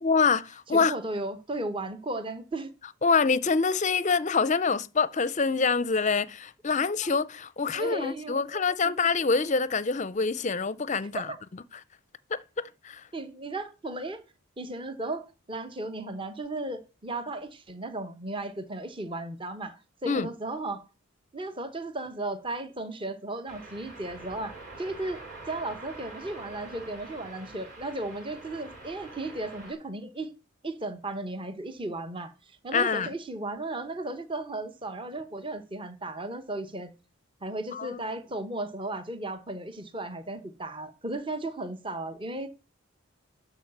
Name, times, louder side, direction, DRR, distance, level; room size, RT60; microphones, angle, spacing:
voice 1, 0.0-1.0 3.0-11.3 12.3-13.0 20.0-20.3 32.7-33.1 37.7-38.0, left 4 dB, 35° left, 0.5 m, -26 dB
voice 2, 0.7-2.7 7.7-8.9 11.3-11.4 13.1-14.2 14.6-20.8 21.3-25.2 25.5-30.3 30.6-32.3 32.6-36.9 37.4-42.5, right 2 dB, 25° right, 1.0 m, -35 dB
sound 1, 23.5-29.7, right 2 dB, 40° right, 6.0 m, -45 dB
12.5 x 4.9 x 7.9 m
head